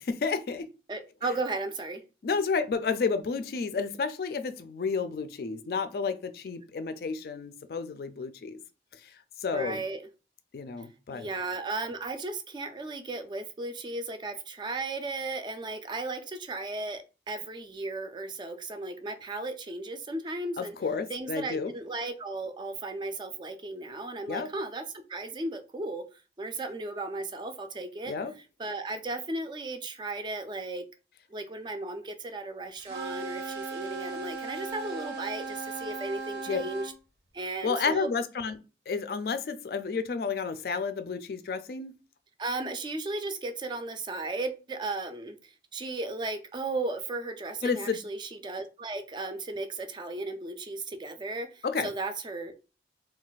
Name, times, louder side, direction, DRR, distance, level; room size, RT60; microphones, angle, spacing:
voice 1, 0.1-0.7 2.2-8.6 9.4-9.8 10.5-11.3 20.6-21.7 24.3-24.5 28.1-28.3 36.5-36.6 37.6-38.6 38.9-41.9 47.6-48.0 51.6-51.9, left 5 dB, 55° left, 0.3 m, -31 dB
voice 2, 0.9-2.0 9.5-10.0 11.1-20.8 21.1-24.8 25.1-26.0 26.4-28.2 28.6-30.8 31.3-36.9 37.3-38.1 42.4-52.7, right 2 dB, 25° right, 0.3 m, -35 dB
sound 1, 32.8-36.9, right 4 dB, 70° right, 0.7 m, -37 dB
2.4 x 2.2 x 3.9 m
head